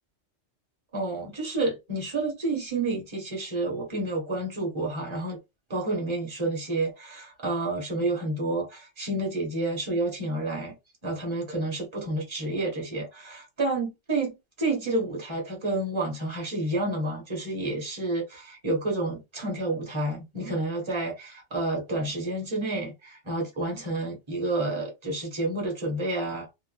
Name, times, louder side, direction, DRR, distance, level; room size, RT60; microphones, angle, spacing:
voice 1, 0.9-5.4 5.7-10.7 11.0-26.5, right 2 dB, 25° right, 1.2 m, -30 dB
3.1 x 2.0 x 3.2 m
omnidirectional pair, 1.2 m